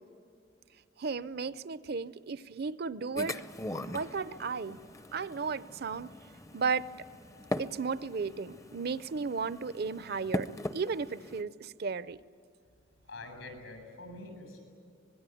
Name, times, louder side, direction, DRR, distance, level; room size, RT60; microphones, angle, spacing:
voice 1, 1.0-3.4 3.9-4.8 5.1-6.1 6.5-6.9 7.6-12.2, right 5 dB, 50° right, 17 dB, 0.5 m, -34 dB
sound 1, 3.2-11.4, left 1 dB, 15° left, 0.6 m, -41 dB
voice 2, 13.1-14.6, left 2 dB, 80° left, 7 dB, 7.5 m, -46 dB
25.0 x 21.0 x 9.3 m, 2.5 s
head